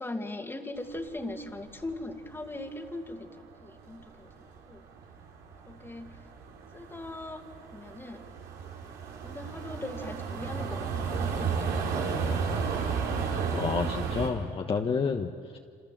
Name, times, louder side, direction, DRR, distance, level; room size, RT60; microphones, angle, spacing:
voice 1, 0.0-3.3 3.6-4.3 4.7-4.8 5.7-6.2 6.7-7.5 7.7-8.2 9.2-11.9 12.2-12.5, left 2 dB, 15° left, 5 dB, 2.3 m, -40 dB
sound 1, 0.8-3.0 3.3-14.3, right 5 dB, 85° right, 4.7 m, -33 dB
voice 2, 13.5-15.6, left 5 dB, 35° left, 3 dB, 1.3 m, -30 dB
27.5 x 27.5 x 7.6 m, 2.1 s
cardioid pair, 110°, 17 cm